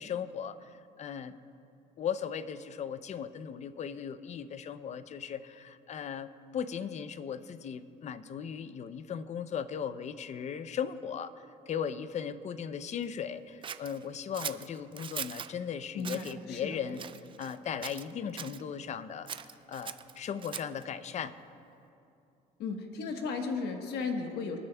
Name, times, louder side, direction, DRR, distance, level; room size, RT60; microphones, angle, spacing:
voice 1, 0.0-1.4 2.0-17.0 17.4-21.4, left 7 dB, 45° left, 13 dB, 0.5 m, -37 dB
Scissors, 13.6-15.5 16.0-16.3 16.9-17.6 17.8-18.6 19.3-20.8, right 7 dB, 30° right, 0.4 m, -41 dB
voice 2, 15.9-16.8 22.6-24.6, left 4 dB, 80° left, 4 dB, 1.2 m, -35 dB
26.5 x 9.7 x 2.3 m, 2.7 s
cardioid pair, 110°, 17 cm